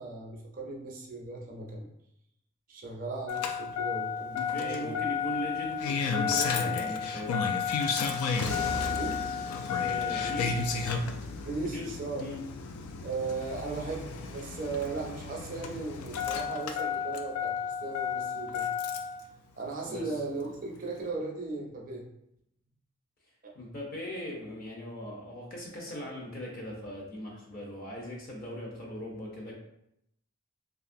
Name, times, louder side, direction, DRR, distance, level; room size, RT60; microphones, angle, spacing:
voice 1, 0.0-1.9 2.7-5.0 8.9-9.2 11.4-12.2 13.0-18.7 19.6-22.1 23.4-23.5, right 3 dB, 40° right, -1 dB, 0.4 m, -37 dB
Engine starting, 3.3-19.2 20.5-20.6, left 6 dB, 80° left, 0.3 m, -32 dB
voice 2, 4.3-7.5 9.7-10.9 11.7-12.4 19.8-20.1 23.5-29.5, left 1 dB, 40° left, -2 dB, 0.6 m, -39 dB
2.8 x 2.4 x 2.5 m, 0.79 s
head